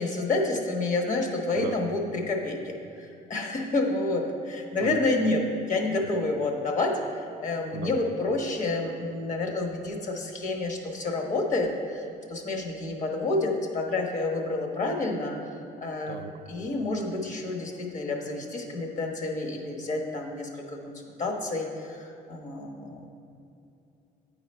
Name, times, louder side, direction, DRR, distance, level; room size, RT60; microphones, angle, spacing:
voice 1, 0.0-5.4 5.7-15.3 15.8-16.1 16.5-23.1, left 2 dB, 50° left, 2 dB, 1.2 m, -29 dB
voice 2, 1.6-1.8 4.8-5.0 7.7-7.9 16.1-16.3, right 8 dB, 70° right, 8 dB, 0.5 m, -35 dB
8.9 x 4.8 x 4.4 m, 2.7 s
cardioid pair, 110°, 17 cm